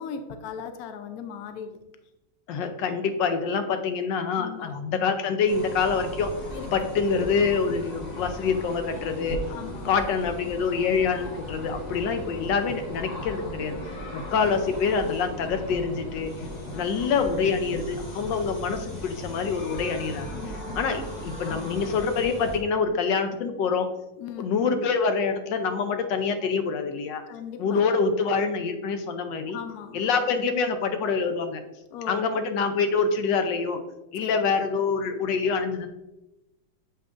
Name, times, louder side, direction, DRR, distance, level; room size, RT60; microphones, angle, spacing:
voice 1, 0.0-1.8 4.4-4.8 6.5-6.7 9.5-9.9 16.7-16.9 20.3-20.8 21.4-21.7 24.2-24.6 27.3-27.8 29.5-30.0 31.9-32.2 34.2-34.5, left 7 dB, 90° left, 8 dB, 0.8 m, -38 dB
voice 2, 2.5-6.3 6.7-9.4 9.8-13.8 14.1-16.3 16.7-20.3 20.8-23.9 24.4-27.2 27.6-29.6 29.9-31.6 32.1-33.8 34.1-35.9, left 5 dB, 70° left, 8 dB, 1.2 m, -26 dB
sound 1, 5.5-22.6, equal, 50° left, 0.4 m, -37 dB
7.4 x 5.5 x 2.5 m, 0.97 s
omnidirectional pair, 2.2 m